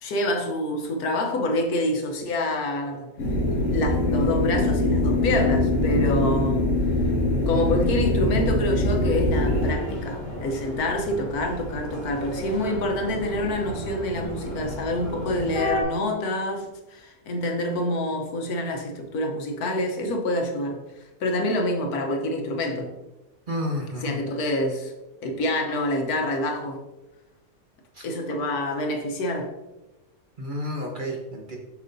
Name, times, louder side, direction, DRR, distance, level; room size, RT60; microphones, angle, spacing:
voice 1, 0.0-3.1 3.7-6.7 7.5-22.9 24.0-24.9 25.2-26.8 28.0-29.5, left 1 dB, 85° left, 3 dB, 1.4 m, -27 dB
sound 1, 3.2-9.7, left 2 dB, 60° left, 1.7 m, -23 dB
sound 2, 9.5-15.8, left 1 dB, 30° left, 2.0 m, -34 dB
voice 2, 23.5-24.2 27.9-28.4 30.4-31.6, left 1 dB, 40° right, 0 dB, 1.0 m, -31 dB
7.5 x 6.0 x 2.7 m, 1.0 s
omnidirectional pair, 1.5 m